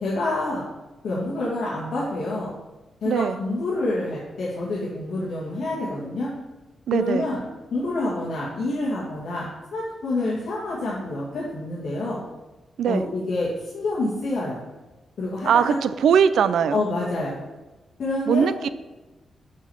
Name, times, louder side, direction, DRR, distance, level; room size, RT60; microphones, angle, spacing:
voice 1, 0.0-0.6 1.0-2.5 3.0-6.3 6.9-7.4 7.7-12.2 12.9-14.6 15.2-15.8 16.7-17.4 18.0-18.5, left 2 dB, 60° left, -6 dB, 2.0 m, -27 dB
voice 2, 3.1-3.4 6.9-7.3 12.8-13.1 15.5-16.8 18.3-18.7, right 7 dB, 80° right, 13 dB, 0.4 m, -20 dB
6.4 x 5.9 x 7.1 m, 1.1 s
wide cardioid pair, 170°, 0 cm